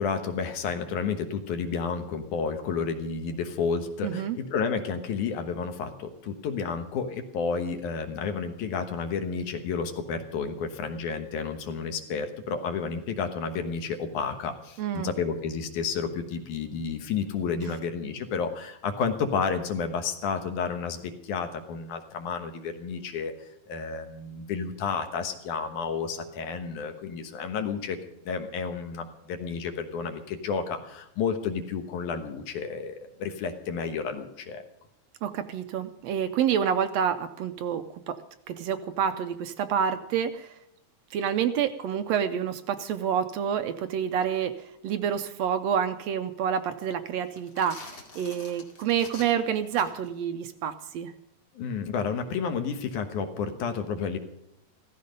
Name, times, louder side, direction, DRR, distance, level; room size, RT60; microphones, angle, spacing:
voice 1, 0.0-23.3 23.7-28.0 28.2-34.6 51.5-54.2, left 5 dB, 85° left, 7 dB, 2.8 m, -31 dB
voice 2, 4.0-4.4 14.8-15.1 17.6-17.8 35.2-38.2 38.5-40.5 41.1-47.9 48.1-51.1, right 8 dB, 75° right, 9 dB, 1.7 m, -28 dB
sound 1, 47.3-50.2, left 3 dB, 35° left, 2.5 m, -46 dB
15.5 x 14.0 x 5.2 m, 0.78 s
omnidirectional pair, 3.4 m